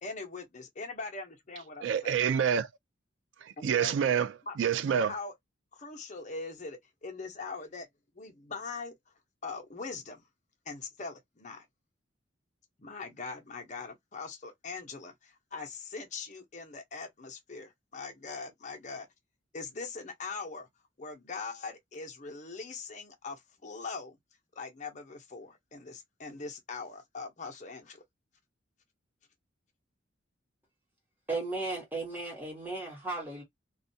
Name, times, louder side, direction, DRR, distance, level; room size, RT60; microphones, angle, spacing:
voice 1, 0.0-2.1 3.6-3.9 4.5-4.6 5.1-5.3 5.7-7.9 8.2-8.9 9.4-10.2 10.7-11.7 12.8-19.1 19.5-20.7 21.0-24.2 24.6-28.0, left 4 dB, 35° left, 0.6 m, -41 dB
voice 2, 1.8-2.7 3.6-4.3 4.6-5.1, right 8 dB, 70° right, 0.3 m, -27 dB
voice 3, 31.3-33.4, right 3 dB, 10° right, 0.9 m, -35 dB
2.3 x 2.2 x 2.6 m
head